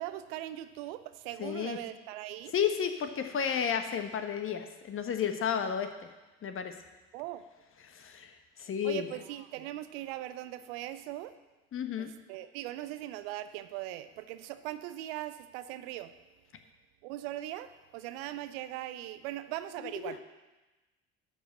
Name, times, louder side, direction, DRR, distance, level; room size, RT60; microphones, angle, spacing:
voice 1, 0.0-2.5 7.1-7.4 8.8-11.3 12.0-16.1 17.0-20.2, right 14 dB, 65° right, 12 dB, 0.6 m, -40 dB
voice 2, 1.4-1.8 2.5-5.9 6.4-6.7 7.8-9.1 11.7-12.1 19.8-20.1, left 8 dB, 40° left, 7 dB, 1.2 m, -32 dB
11.5 x 5.0 x 7.6 m, 1.1 s
figure-of-eight pair, 55°, 32 cm